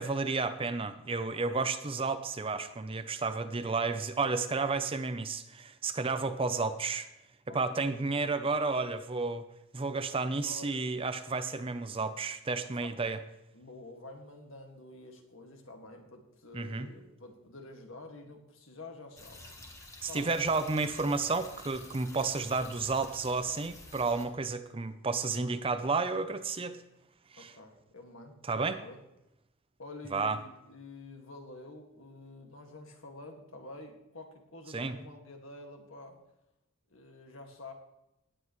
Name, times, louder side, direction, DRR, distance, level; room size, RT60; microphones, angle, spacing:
voice 1, 0.0-7.1 7.5-9.4 9.7-13.2 16.5-16.9 20.0-26.8 27.3-27.5 28.5-28.8 30.1-30.4 34.7-35.0, right 4 dB, 25° right, 10 dB, 0.6 m, -31 dB
voice 2, 7.5-7.9 10.4-10.9 12.6-12.9 13.5-19.6 20.1-20.3 25.4-25.6 27.4-29.0 29.8-36.2 36.9-37.7, left 2 dB, 70° left, 3 dB, 2.0 m, -48 dB
sound 1, 19.2-24.3, left 2 dB, 15° left, 1.4 m, -50 dB
17.5 x 9.5 x 3.2 m, 0.89 s
head